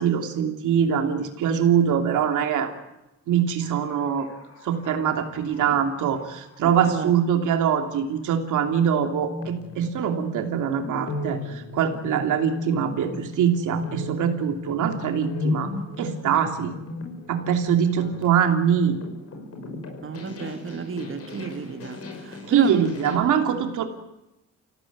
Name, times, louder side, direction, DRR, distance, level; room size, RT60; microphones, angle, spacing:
voice 1, 0.0-2.7 3.3-4.3 4.6-16.7 17.3-19.0 22.4-23.8, right 8 dB, 80° right, 3.0 m, -23 dB
sound 1, 3.6-8.1 8.8-8.9 9.1-23.2, left 2 dB, 50° left, 6.1 m, -36 dB
voice 2, 6.6-7.1 20.0-22.9, right 6 dB, 45° right, 2.3 m, -31 dB
26.5 x 17.0 x 9.5 m
cardioid pair, 90°, 30 cm